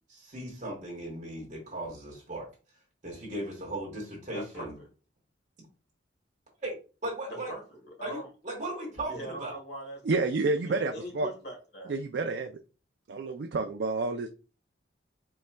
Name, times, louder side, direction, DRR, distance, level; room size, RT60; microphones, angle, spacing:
voice 1, 0.1-2.5 3.0-4.8 6.6-6.7 7.0-7.5 8.0-9.6, right 1 dB, 40° right, -3 dB, 2.1 m, -37 dB
voice 2, 4.3-4.7 7.3-7.6 8.0-8.3 9.1-10.0 10.6-12.0, right 1 dB, 55° left, 0 dB, 1.8 m, -41 dB
voice 3, 10.0-11.3 11.9-12.5 13.1-14.3, right 3 dB, 60° right, 6 dB, 0.4 m, -29 dB
5.3 x 3.3 x 2.2 m, 0.34 s
head